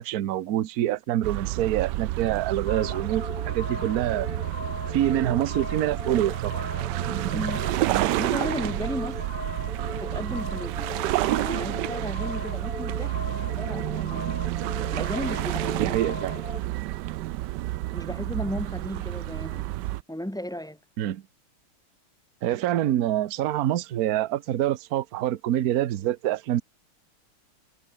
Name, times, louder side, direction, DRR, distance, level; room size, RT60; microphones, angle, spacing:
voice 1, 0.0-4.3 4.9-6.6 15.8-16.4 21.0-21.2 22.4-26.6, right 12 dB, 60° right, 1.0 m, -26 dB
sound 1, 1.2-20.0, right 16 dB, 85° right, 0.9 m, -30 dB
sound 2, 2.7-16.6, left 5 dB, 85° left, 4.5 m, -39 dB
voice 2, 7.3-7.6 8.2-9.2 10.0-10.9 11.4-13.2 13.6-14.3 14.9-16.0 17.9-19.7 20.1-20.8, equal, ahead, 1.4 m, -34 dB
omnidirectional pair, 2.4 m